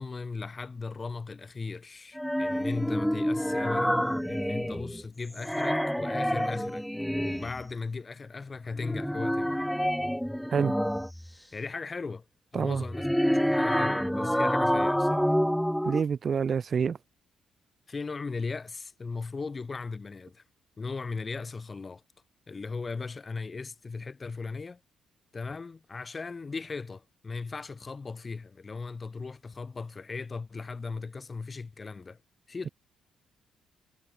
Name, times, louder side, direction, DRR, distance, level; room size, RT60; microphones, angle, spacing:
voice 1, 0.0-6.8 7.1-9.7 11.5-12.2 12.5-15.3 17.9-20.4 20.8-22.0 22.5-24.8 25.3-32.2 32.5-32.7, left 4 dB, 30° left, 2.4 m, -37 dB
sound 1, 2.1-5.0 5.3-7.6 8.8-11.3 12.7-16.0, equal, ahead, 2.3 m, -28 dB
voice 2, 15.8-17.0, right 6 dB, 45° right, 2.2 m, -27 dB
cardioid pair, 90°, 0 cm